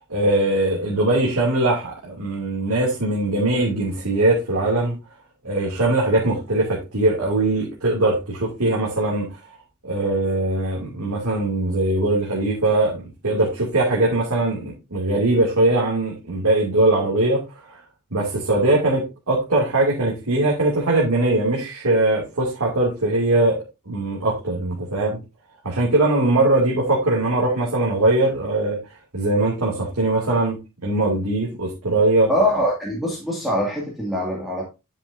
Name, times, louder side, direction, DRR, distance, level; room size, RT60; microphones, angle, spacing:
voice 1, 0.1-4.9 5.4-9.4 9.8-17.8 18.1-23.6 23.9-25.2 25.6-28.8 29.1-30.6 30.8-32.3, right 2 dB, 75° right, -4 dB, 2.7 m, -21 dB
voice 2, 32.3-34.7, equal, ahead, -5 dB, 2.4 m, -23 dB
10.5 x 7.1 x 2.7 m, 0.27 s
head